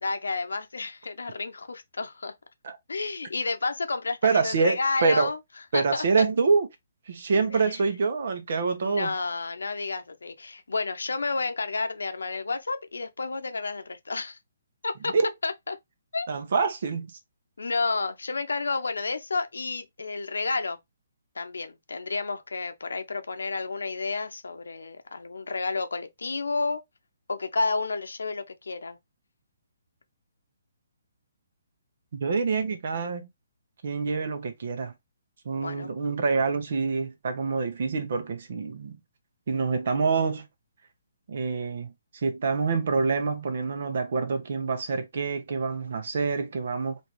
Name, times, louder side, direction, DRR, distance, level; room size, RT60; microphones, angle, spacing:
voice 1, 0.0-2.3 2.9-5.4 5.7-6.0 7.5-7.8 8.8-14.4 14.8-15.1 15.4-15.8 16.1-16.3 17.6-20.8 21.3-26.8 27.3-29.0 35.6-35.9, left 3 dB, 90° left, 0.9 m, -31 dB
voice 2, 4.2-5.3 5.7-6.7 7.1-9.1 15.1-15.3 16.3-17.1 32.2-33.3 33.8-34.9 35.4-39.0 39.5-40.5 41.3-47.0, right 4 dB, 60° right, 1.1 m, -26 dB
4.3 x 2.8 x 3.1 m
hypercardioid pair, 155°, 0 cm